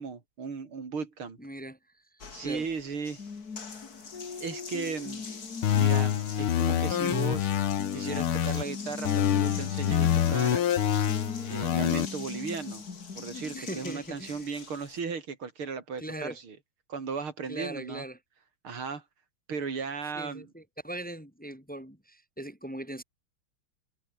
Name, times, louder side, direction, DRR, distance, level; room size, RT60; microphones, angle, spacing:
voice 1, 0.0-1.4 2.3-3.2 4.4-5.4 5.7-7.5 7.9-10.6 11.5-12.8 13.2-16.6 16.9-18.0 18.6-19.0 19.5-20.5, right 5 dB, 80° right, 4.2 m, -36 dB
voice 2, 1.4-1.8 2.1-2.7 13.5-14.5 16.0-16.4 17.5-18.2 20.1-23.0, right 1 dB, 5° left, 3.6 m, -40 dB
Water tap faucet, 2.2-15.0, left 5 dB, 45° left, 2.9 m, -41 dB
sound 1, 5.6-8.6 9.0-12.1, left 10 dB, 85° left, 2.2 m, -26 dB
omnidirectional pair, 2.3 m